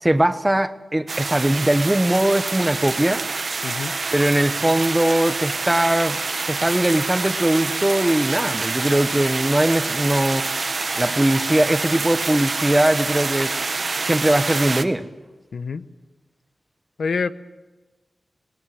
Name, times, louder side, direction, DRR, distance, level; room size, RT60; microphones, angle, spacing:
voice 1, 0.0-3.2 4.1-6.2 6.5-10.5 11.0-13.5 14.1-15.1, right 1 dB, 15° right, 11 dB, 1.1 m, -20 dB
sound 1, 1.1-14.8, right 3 dB, 50° right, 1.1 m, -26 dB
voice 2, 3.6-3.9 15.5-15.8 17.0-17.3, left 5 dB, 80° left, 12 dB, 0.9 m, -26 dB
20.5 x 18.5 x 7.8 m, 1.2 s
wide cardioid pair, 85°, 0 cm